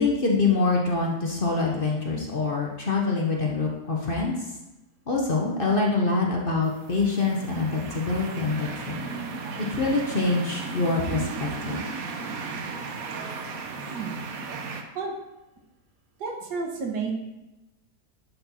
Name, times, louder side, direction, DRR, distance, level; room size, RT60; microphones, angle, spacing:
voice 1, 0.0-4.3 5.1-8.9 9.7-11.8, left 3 dB, 40° left, -1 dB, 1.0 m, -25 dB
sound 1, 6.7-14.8, right 4 dB, 65° right, 1.2 m, -35 dB
voice 2, 14.7-15.1 16.2-17.1, right 4 dB, 85° right, 2 dB, 1.8 m, -32 dB
10.5 x 4.3 x 4.3 m, 0.99 s
omnidirectional pair, 1.8 m